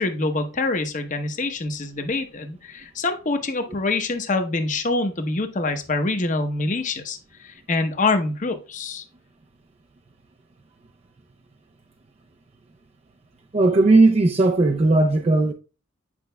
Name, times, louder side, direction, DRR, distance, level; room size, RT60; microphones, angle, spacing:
voice 1, 0.0-9.0, left 3 dB, 40° left, 0.8 m, -25 dB
voice 2, 13.5-15.5, right 2 dB, 30° right, 0.4 m, -17 dB
8.5 x 5.2 x 2.2 m
head